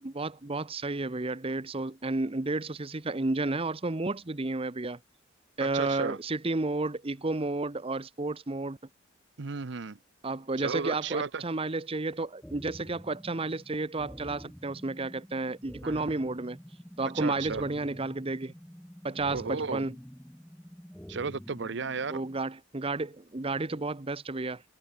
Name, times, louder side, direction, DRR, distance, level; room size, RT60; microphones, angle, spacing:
voice 1, 0.0-5.0 5.6-8.8 10.2-16.6 17.0-18.5 19.0-20.0 22.1-24.6, right 2 dB, 30° right, 0.9 m, -32 dB
voice 2, 5.6-6.2 9.4-10.0 10.6-11.4 15.8-16.0 17.1-17.6 19.3-19.9 21.1-22.2, right 4 dB, 65° right, 0.7 m, -34 dB
sound 1, 12.4-22.4, equal, 5° left, 0.7 m, -48 dB
head